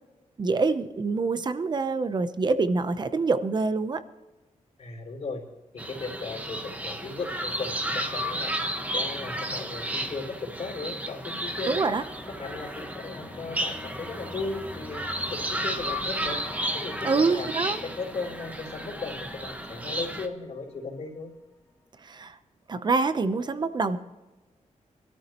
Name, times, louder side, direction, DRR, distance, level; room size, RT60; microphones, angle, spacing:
voice 1, 0.4-4.0 11.7-12.0 17.0-17.8 22.0-22.4 22.7-24.0, right 4 dB, 35° right, 11 dB, 0.8 m, -26 dB
voice 2, 4.8-5.4 5.7-8.5 8.9-11.9 12.4-16.4 16.7-17.5 17.8-21.3, left 3 dB, 55° left, 0 dB, 3.8 m, -36 dB
sound 1, 5.8-20.3, right 1 dB, 10° right, 1.1 m, -33 dB
sound 2, 11.3-21.4, left 2 dB, 20° left, 2.0 m, -47 dB
24.0 x 13.5 x 3.1 m, 1.1 s
wide cardioid pair, 160°, 13 cm